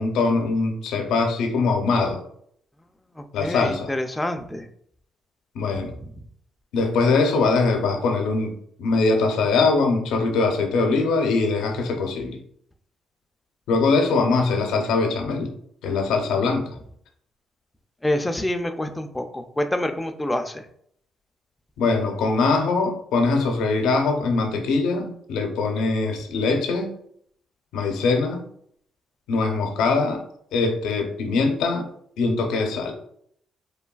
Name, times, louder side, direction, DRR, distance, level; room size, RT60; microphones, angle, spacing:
voice 1, 0.0-2.2 3.3-3.9 5.5-5.9 6.7-12.4 13.7-15.5 15.8-16.7 21.8-27.0 27.7-28.4 29.3-30.2 30.5-31.9 32.2-32.9, left 3 dB, 85° left, 3 dB, 0.5 m, -22 dB
voice 2, 3.2-4.7 5.7-5.8 18.0-20.6, left 1 dB, 10° left, 6 dB, 0.3 m, -27 dB
3.2 x 2.2 x 2.3 m, 0.66 s
cardioid pair, 90°, 0 cm